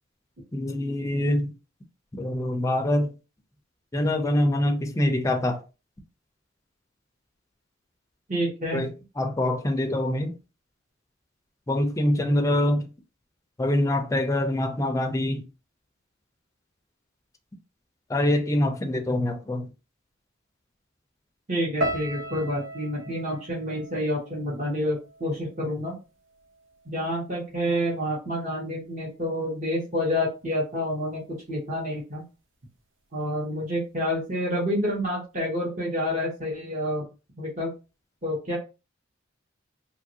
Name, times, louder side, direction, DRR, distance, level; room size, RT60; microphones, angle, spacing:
voice 1, 0.5-1.5 2.1-3.1 3.9-5.6 8.7-10.3 11.7-12.9 13.6-15.4 18.1-19.7, left 1 dB, 15° left, 0.4 m, -25 dB
voice 2, 8.3-8.9 21.5-25.9 26.9-31.2 31.5-32.2 33.1-37.1 37.4-37.7 38.2-38.6, equal, 40° right, 1.0 m, -28 dB
sound 1, 21.8-26.0 26.3-27.1 27.6-27.9, right 1 dB, 70° right, 0.6 m, -36 dB
2.9 x 2.5 x 2.7 m
head